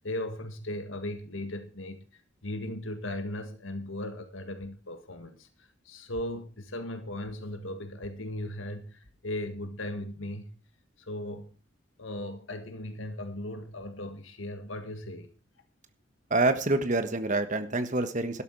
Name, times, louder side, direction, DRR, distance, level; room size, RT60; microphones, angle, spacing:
voice 1, 0.0-10.5 11.0-11.5 12.0-15.3, left 1 dB, 85° left, 1.8 m, -37 dB
voice 2, 16.3-18.4, right 2 dB, 40° right, 1.4 m, -26 dB
12.5 x 12.0 x 4.7 m
head